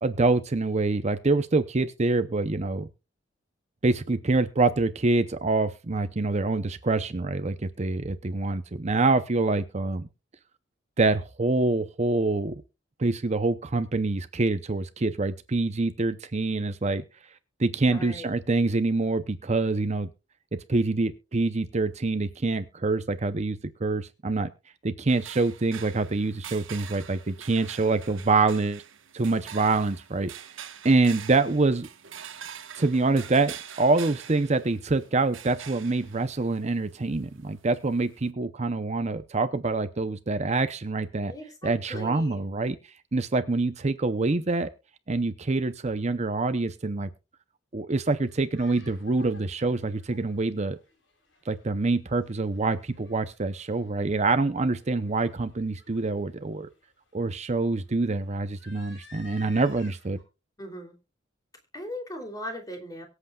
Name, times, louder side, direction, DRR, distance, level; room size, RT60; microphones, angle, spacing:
voice 1, 0.0-2.9 3.8-10.1 11.0-12.6 13.0-17.0 17.6-20.1 20.5-24.5 24.8-28.8 29.1-30.3 30.8-31.9 32.8-41.3 41.6-42.8 43.1-44.7 45.1-47.1 47.7-50.8 51.5-56.7 57.1-60.2, right 3 dB, 35° right, 11 dB, 0.7 m, -26 dB
voice 2, 17.9-18.3 41.3-42.4 60.6-60.9 61.7-63.1, equal, 20° left, 4 dB, 3.0 m, -38 dB
sound 1, 25.1-38.3, right 9 dB, 90° right, 1.3 m, -45 dB
sound 2, 47.9-60.2, left 3 dB, 70° left, 6.6 m, -55 dB
23.5 x 8.0 x 2.3 m, 0.28 s
head